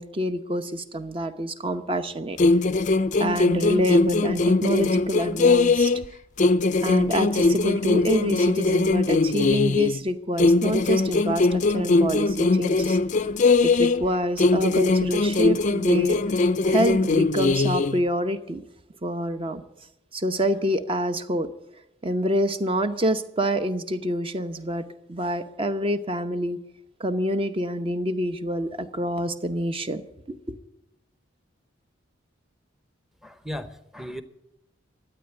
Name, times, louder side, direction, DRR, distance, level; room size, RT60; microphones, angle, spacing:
voice 1, 0.0-2.4 3.2-5.9 6.8-13.0 13.6-16.2 16.6-18.6 19.0-19.6 20.1-21.5 22.0-24.8 25.1-26.6 27.0-30.0 30.3-30.6, equal, 30° right, 10 dB, 0.8 m, -26 dB
sound 1, 2.4-6.1 6.4-10.0 10.4-14.1 14.4-18.0, left 3 dB, 40° left, 0.4 m, -21 dB
voice 2, 33.2-34.2, equal, ahead, 10 dB, 0.8 m, -36 dB
13.0 x 9.0 x 9.7 m, 0.85 s
head